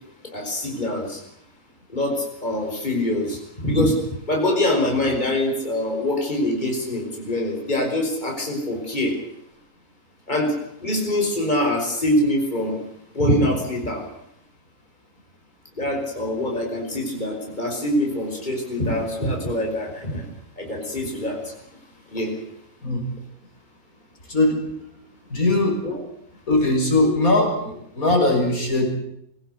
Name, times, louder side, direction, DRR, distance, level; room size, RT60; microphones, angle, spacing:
voice 1, 0.2-1.2 1.9-9.2 10.3-12.8 13.1-14.1 15.8-20.3 20.6-21.6 22.1-22.3 25.8-25.9, left 1 dB, 30° left, 1 dB, 5.7 m, -24 dB
voice 2, 24.3-24.6 25.3-25.8 26.5-28.9, left 2 dB, 70° left, 2 dB, 6.9 m, -20 dB
25.0 x 17.5 x 8.2 m, 0.76 s
omnidirectional pair, 1.6 m